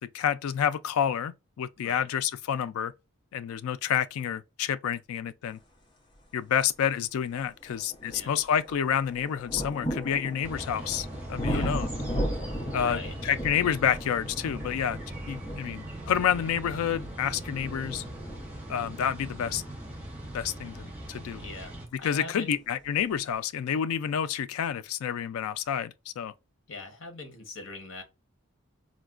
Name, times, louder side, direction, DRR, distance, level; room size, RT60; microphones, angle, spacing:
voice 1, 0.1-2.9 3.3-5.6 6.3-11.9 12.7-15.0 15.3-18.0 18.7-19.6 20.3-21.4 22.0-26.3, left 8 dB, 75° left, 0.3 m, -29 dB
voice 2, 1.8-2.1 8.1-8.3 11.4-11.8 12.8-13.1 21.4-22.6 26.7-28.0, left 3 dB, 60° left, 0.9 m, -41 dB
sound 1, 6.6-6.7 7.3-21.9 22.8-22.9, equal, 20° left, 0.6 m, -37 dB
sound 2, 10.4-21.9, right 1 dB, 5° right, 0.7 m, -40 dB
4.0 x 2.2 x 2.3 m
head